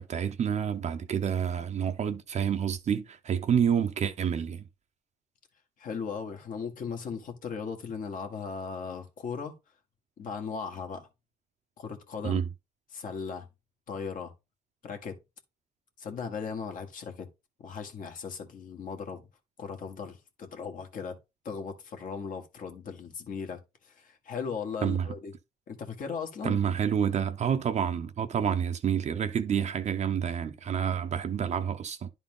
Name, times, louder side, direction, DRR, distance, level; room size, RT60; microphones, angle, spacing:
voice 1, 0.0-4.6 12.2-12.5 24.8-25.1 26.4-32.1, right 8 dB, 45° right, 0.8 m, -28 dB
voice 2, 5.8-9.6 10.2-11.1 11.8-12.4 12.9-13.5 13.9-14.3 14.8-15.2 16.0-17.3 17.6-19.2 19.6-21.2 21.5-25.3 25.7-26.6, left 6 dB, 55° left, 1.8 m, -37 dB
11.0 x 4.0 x 3.7 m
cardioid pair, 110°, 17 cm